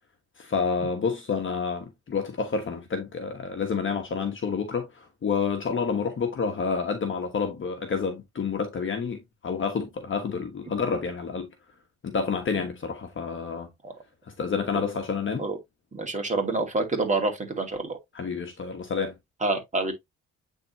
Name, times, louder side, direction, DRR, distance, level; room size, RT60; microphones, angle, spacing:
voice 1, 0.4-11.5 12.0-13.7 14.2-15.4 18.1-19.1, left 5 dB, 40° left, 1.3 m, -29 dB
voice 2, 15.9-18.0 19.4-19.9, right 3 dB, 25° right, 2.4 m, -27 dB
8.6 x 3.7 x 2.9 m
cardioid pair, 90°, 30 cm